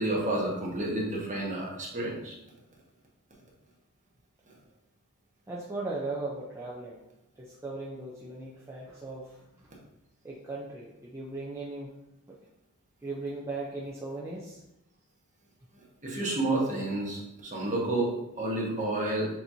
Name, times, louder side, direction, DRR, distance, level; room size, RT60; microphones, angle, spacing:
voice 1, 0.0-2.3 16.0-19.3, right 2 dB, 35° right, -3 dB, 1.2 m, -30 dB
voice 2, 5.5-7.0 7.4-9.5 10.2-11.9 13.0-14.6, right 2 dB, 10° right, -5 dB, 0.5 m, -37 dB
6.7 x 2.9 x 2.7 m, 0.89 s
head